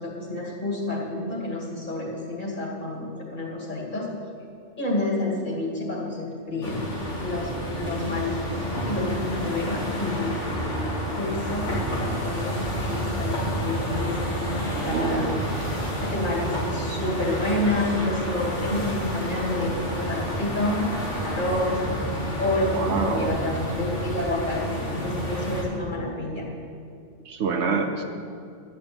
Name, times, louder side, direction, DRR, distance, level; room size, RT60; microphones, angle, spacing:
voice 1, 0.0-4.1 4.8-6.9 7.2-10.3 11.1-11.7 12.0-15.8 16.1-20.9 21.2-26.5, left 1 dB, 45° left, -4 dB, 2.5 m, -29 dB
sound 1, 6.6-25.6, equal, 85° left, 2.9 m, -29 dB
voice 2, 14.7-15.3 22.7-23.4 27.3-28.0, right 5 dB, 70° right, 5 dB, 1.1 m, -26 dB
11.0 x 5.8 x 8.7 m, 2.3 s
omnidirectional pair, 1.2 m